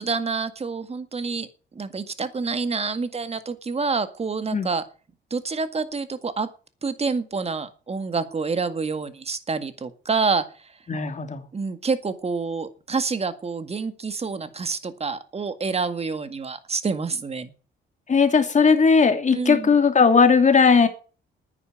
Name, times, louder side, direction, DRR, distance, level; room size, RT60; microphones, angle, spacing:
voice 1, 0.0-1.5 1.8-4.8 5.3-6.5 6.8-10.4 11.5-17.5 19.3-19.7, right 4 dB, 30° right, 11 dB, 1.9 m, -27 dB
voice 2, 10.9-11.4 18.1-20.9, left 5 dB, 35° left, 7 dB, 2.8 m, -17 dB
10.0 x 9.6 x 9.1 m, 0.38 s
cardioid pair, 90°, 20 cm